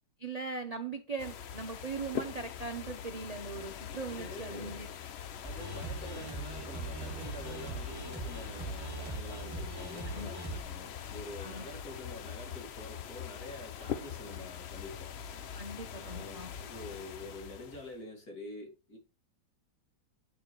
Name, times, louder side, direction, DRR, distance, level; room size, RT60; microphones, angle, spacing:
voice 1, 0.2-4.9 10.1-10.3 11.4-11.6 15.5-16.5, right 4 dB, 35° right, 0.6 m, -40 dB
sound 1, 1.2-18.0, left 8 dB, 75° left, 0.6 m, -43 dB
voice 2, 4.0-4.9 5.4-15.1 15.9-19.0, left 1 dB, 55° left, 2.9 m, -47 dB
sound 2, 5.4-10.6, right 3 dB, 15° right, 2.6 m, -41 dB
8.6 x 6.7 x 3.1 m
omnidirectional pair, 1.9 m